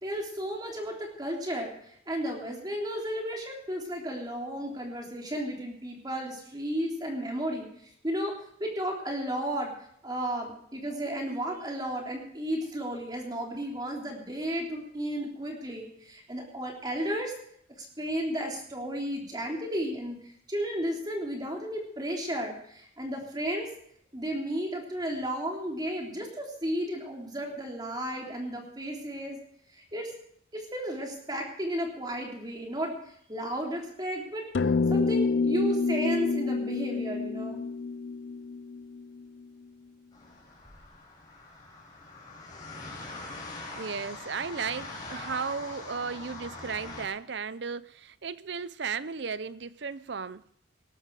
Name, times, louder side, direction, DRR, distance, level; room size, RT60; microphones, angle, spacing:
voice 1, 0.0-7.7 8.0-9.7 10.0-17.3 17.8-20.2 20.5-23.7 24.1-29.4 29.7-30.1 30.5-33.0 33.3-34.4 34.9-37.6, equal, 20° right, 3.6 m, -33 dB
sound 1, 34.5-39.2, left 4 dB, 60° left, 0.5 m, -28 dB
sound 2, 40.1-47.0, left 2 dB, 20° left, 5.4 m, -43 dB
voice 2, 43.7-50.4, right 5 dB, 60° right, 0.6 m, -35 dB
19.5 x 12.0 x 4.9 m
head